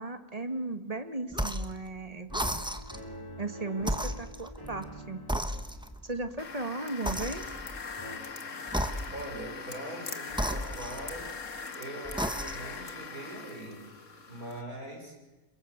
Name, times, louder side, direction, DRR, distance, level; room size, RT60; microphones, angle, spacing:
voice 1, 0.0-2.7 3.4-5.2 6.0-7.4, right 2 dB, 25° right, 8 dB, 1.6 m, -36 dB
sound 1, 1.3-1.8 2.3-3.1 3.8-4.9 5.3-6.1 7.0-7.8 8.7-9.4 10.3-11.4 12.0-12.8, equal, 5° right, 1.1 m, -34 dB
sound 2, 2.3-7.7 8.0-8.2, right 1 dB, 15° left, 5.0 m, -47 dB
sound 3, 6.4-14.6, left 5 dB, 55° left, 2.0 m, -41 dB
voice 2, 9.1-11.3 11.7-13.8 14.3-15.1, right 1 dB, 75° right, 1 dB, 7.0 m, -42 dB
27.0 x 23.0 x 8.1 m, 1.1 s
omnidirectional pair, 1.5 m